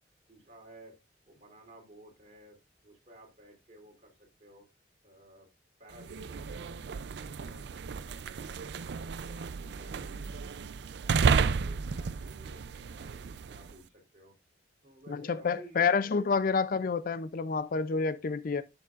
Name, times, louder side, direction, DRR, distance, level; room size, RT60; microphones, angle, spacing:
voice 1, 0.3-1.0 1.3-4.7 5.0-5.5 5.8-6.8 7.1-10.7 11.0-14.3 14.8-16.0 16.4-16.6, right 1 dB, 40° right, 3.3 m, -55 dB
sound 1, 5.9-13.8, right 5 dB, 60° right, 0.4 m, -32 dB
voice 2, 15.1-18.6, left 5 dB, 50° left, 0.4 m, -29 dB
11.0 x 6.9 x 2.4 m
head